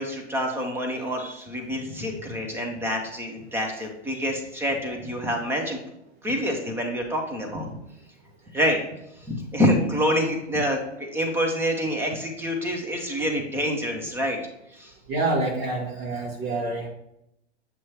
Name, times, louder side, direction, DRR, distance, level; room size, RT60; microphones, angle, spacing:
voice 1, 0.0-5.8 6.2-7.8 8.5-8.8 9.3-10.8 11.1-14.4 14.7-14.9, equal, 5° right, 3 dB, 0.6 m, -27 dB
voice 2, 15.1-16.9, right 2 dB, 60° right, -2 dB, 2.0 m, -27 dB
6.8 x 3.0 x 4.5 m, 0.80 s
hypercardioid pair, 130°, 34 cm